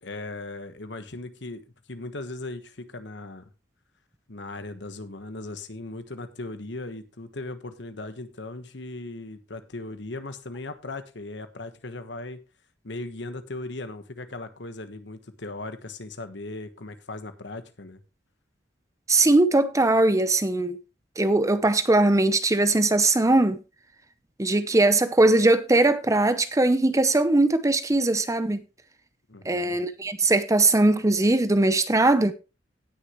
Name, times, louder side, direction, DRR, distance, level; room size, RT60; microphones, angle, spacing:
voice 1, 0.0-1.6 1.9-3.5 4.3-12.4 12.8-18.0 29.3-29.8, left 2 dB, 70° left, 1.3 m, -38 dB
voice 2, 19.1-20.8 21.2-23.6 24.4-28.6 29.4-32.3, right 2 dB, 15° right, 0.7 m, -20 dB
17.5 x 6.6 x 3.1 m
head